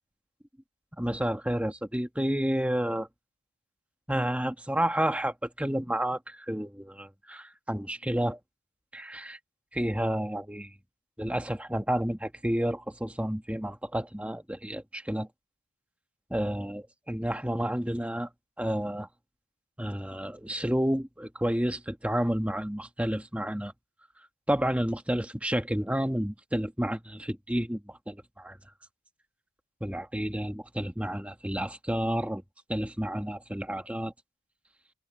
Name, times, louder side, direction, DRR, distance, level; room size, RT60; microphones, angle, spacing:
voice 1, 1.0-3.1 4.1-8.4 8.9-9.4 9.7-10.7 11.2-15.3 16.3-18.3 18.6-19.1 19.8-23.7 24.5-28.6 29.8-32.4 32.7-34.1, equal, 5° right, 1.2 m, -30 dB
head